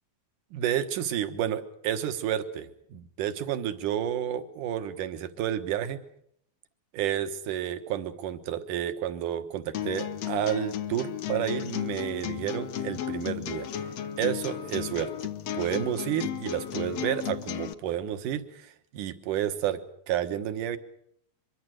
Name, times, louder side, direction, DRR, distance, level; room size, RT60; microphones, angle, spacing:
voice 1, 0.5-6.0 6.9-13.7 14.2-15.1 15.6-19.8 20.1-20.8, right 10 dB, 65° right, 9 dB, 2.7 m, -30 dB
sound 1, 9.7-17.7, left 10 dB, 65° left, 1.8 m, -34 dB
24.5 x 23.5 x 6.5 m, 0.69 s
omnidirectional pair, 4.2 m